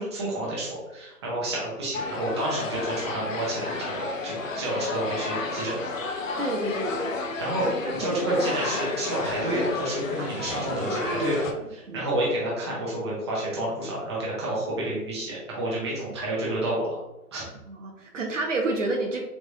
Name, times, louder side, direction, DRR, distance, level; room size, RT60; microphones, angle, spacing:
voice 1, 0.0-5.9 7.4-11.4 11.7-16.9 17.3-17.4, right 1 dB, 20° right, -6 dB, 0.8 m, -29 dB
sound 1, 1.9-11.5, left 3 dB, 55° left, 0.6 m, -32 dB
voice 2, 6.4-7.2 7.6-8.1 10.2-10.3 10.9-12.1 17.7-19.2, right 2 dB, 55° right, 1 dB, 0.6 m, -31 dB
3.3 x 3.1 x 2.7 m, 0.94 s
hypercardioid pair, 150°, 46 cm